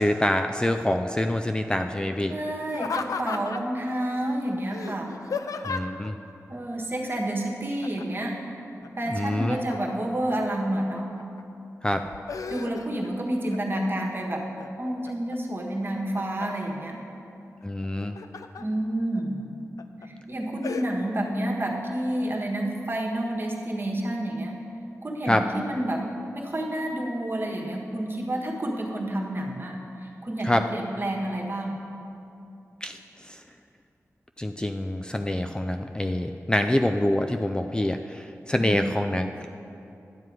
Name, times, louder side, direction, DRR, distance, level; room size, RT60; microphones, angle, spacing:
voice 1, 0.0-2.4 5.6-6.2 9.1-9.6 11.8-12.0 17.6-18.2 25.3-25.4 30.4-30.6 32.8-33.4 34.4-39.5, left 1 dB, 15° left, 6 dB, 0.3 m, -26 dB
voice 2, 2.3-5.1 6.5-8.3 9.0-11.2 12.5-14.4 14.8-17.0 18.6-19.4 20.0-24.6 25.0-26.0 26.3-31.8 38.6-38.8, right 1 dB, 40° right, 0 dB, 1.4 m, -29 dB
Laughter, 2.7-3.8 4.7-6.1 7.8-8.3 8.6-10.2 10.8-11.4 11.8-13.1 13.5-14.1 14.6-15.4 15.8-16.7 17.8-18.6 19.2-19.3 19.8-20.1 20.6-20.9, left 5 dB, 85° left, 0.4 m, -35 dB
10.5 x 7.6 x 4.7 m, 2.7 s
wide cardioid pair, 85°, 6 cm